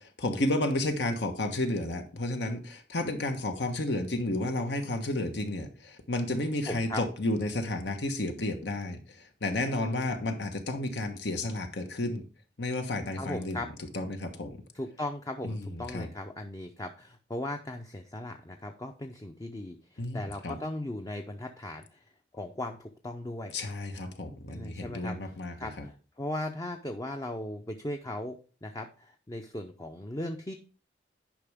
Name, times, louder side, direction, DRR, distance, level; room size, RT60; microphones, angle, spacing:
voice 1, 0.2-9.0 9.4-12.2 12.6-13.7 13.9-14.6 15.4-16.1 20.0-20.6 23.5-25.9, left 1 dB, 80° left, 6 dB, 1.3 m, -32 dB
voice 2, 6.7-7.0 9.8-10.2 13.2-13.7 14.7-22.0 22.3-23.5 24.5-25.3 25.6-30.5, left 1 dB, 20° left, 5 dB, 0.6 m, -38 dB
10.0 x 5.4 x 3.5 m, 0.37 s
head